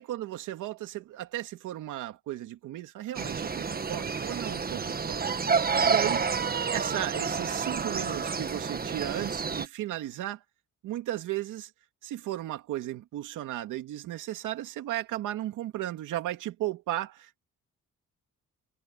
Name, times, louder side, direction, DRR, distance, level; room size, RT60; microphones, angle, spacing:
voice 1, 0.0-5.3 5.9-6.3 6.6-10.4 10.8-11.7 12.0-17.4, right 14 dB, 85° right, 2.7 m, -35 dB
sound 1, 3.1-9.7, right 5 dB, 30° right, 1.4 m, -29 dB
cardioid pair, 90°, 30 cm